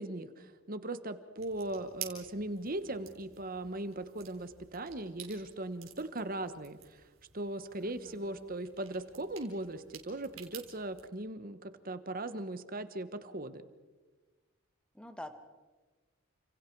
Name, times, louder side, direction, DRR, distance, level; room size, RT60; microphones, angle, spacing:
voice 1, 0.0-7.0 7.3-13.6, right 1 dB, 45° right, 12 dB, 1.2 m, -39 dB
sound 1, 1.4-11.1, right 10 dB, 75° right, 4.1 m, -51 dB
voice 2, 7.8-8.5 14.9-15.3, left 1 dB, 5° left, 8 dB, 1.5 m, -47 dB
30.0 x 27.0 x 4.7 m, 1.3 s
head